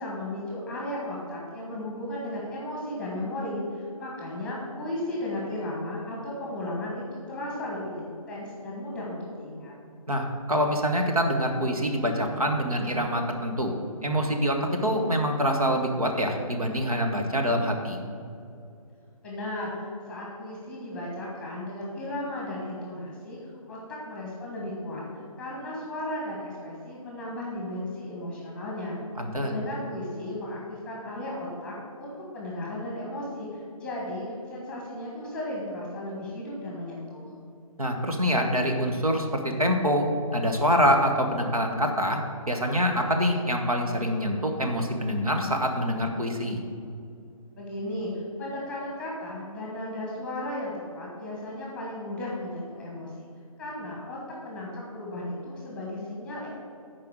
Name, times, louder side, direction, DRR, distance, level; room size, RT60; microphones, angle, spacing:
voice 1, 0.0-7.0 7.3-9.7 19.2-23.4 23.7-23.8 24.0-25.0 25.4-29.0 29.4-37.3 47.6-53.3 53.6-56.5, left 1 dB, 5° left, -4 dB, 1.3 m, -35 dB
voice 2, 10.1-13.7 14.0-18.0 29.2-29.5 37.8-42.2 42.5-46.6, equal, 75° right, 3 dB, 1.5 m, -25 dB
10.0 x 4.8 x 6.3 m, 2.5 s
figure-of-eight pair, 145°, 19 cm